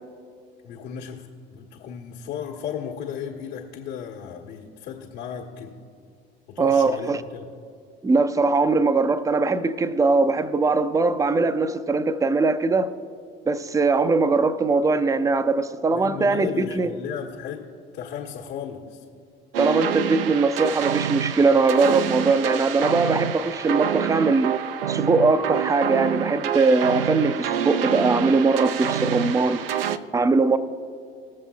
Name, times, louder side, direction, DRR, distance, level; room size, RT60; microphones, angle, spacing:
voice 1, 0.6-1.3 1.5-5.8 6.5-7.2 15.9-17.7 17.9-19.0, left 8 dB, 55° left, 1.5 m, -35 dB
voice 2, 6.6-7.2 8.0-12.9 13.5-17.0 19.6-24.5 24.9-29.7 30.1-30.6, right 3 dB, 10° right, 0.6 m, -21 dB
sound 1, 19.5-30.0, right 9 dB, 70° right, 0.5 m, -27 dB
21.0 x 7.6 x 2.3 m
figure-of-eight pair, 65°, 30 cm